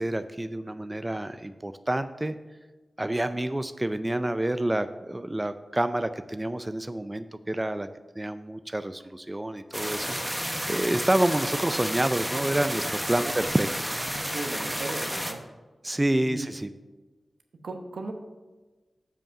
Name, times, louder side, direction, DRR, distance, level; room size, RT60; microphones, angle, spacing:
voice 1, 0.0-2.4 3.0-7.9 8.2-13.7 15.8-16.7, right 1 dB, 20° right, 11 dB, 0.4 m, -28 dB
sound 1, 9.7-15.3, equal, ahead, 1.0 m, -31 dB
voice 2, 14.3-15.4 16.2-16.5 17.6-18.1, right 3 dB, 80° right, 5 dB, 0.9 m, -36 dB
7.3 x 5.2 x 6.3 m, 1.2 s
cardioid pair, 50°, 0 cm